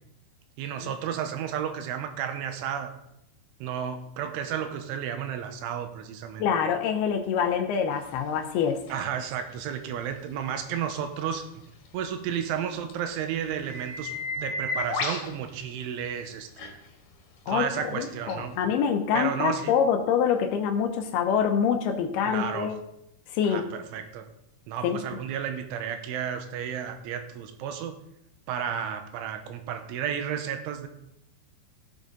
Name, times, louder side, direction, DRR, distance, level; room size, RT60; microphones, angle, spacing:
voice 1, 0.6-2.9 3.6-6.5 8.9-11.5 11.9-16.8 17.5-18.6 19.1-19.7 22.3-22.7 23.4-24.3 24.7-28.0 28.5-30.9, right 8 dB, 85° right, 7 dB, 3.3 m, -32 dB
voice 2, 6.4-8.8 17.5-17.7 17.9-22.7 23.3-23.6 24.8-25.0, left 7 dB, 80° left, 5 dB, 2.3 m, -25 dB
sound 1, 8.9-9.0 12.9-13.0 13.4-15.3 16.6-16.7 18.3-18.4, left 3 dB, 55° left, 2.5 m, -32 dB
16.0 x 7.2 x 4.0 m, 0.81 s
omnidirectional pair, 5.6 m